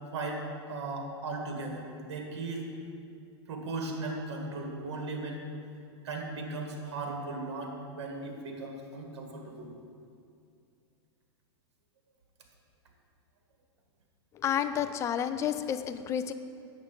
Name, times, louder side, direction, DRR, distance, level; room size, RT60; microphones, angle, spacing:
voice 1, 0.1-2.7 3.5-5.4 6.0-9.7, right 2 dB, 70° right, 2 dB, 1.8 m, -37 dB
voice 2, 14.3-16.3, left 9 dB, 20° left, 10 dB, 0.3 m, -30 dB
8.2 x 6.6 x 5.1 m, 2.4 s
supercardioid pair, 140°, 15 cm